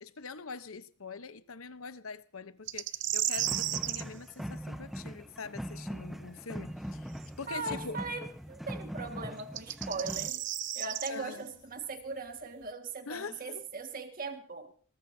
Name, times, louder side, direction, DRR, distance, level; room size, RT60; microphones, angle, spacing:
voice 1, 0.0-8.0 11.1-11.5 13.1-13.7, left 4 dB, 85° left, 1.0 m, -44 dB
sound 1, 2.7-4.0 7.2-7.3 9.4-11.1, right 13 dB, 60° right, 0.8 m, -33 dB
sound 2, 3.4-10.3, equal, ahead, 0.9 m, -41 dB
voice 2, 7.5-10.4 10.7-14.7, right 3 dB, 45° right, 2.0 m, -39 dB
21.5 x 20.0 x 2.8 m
head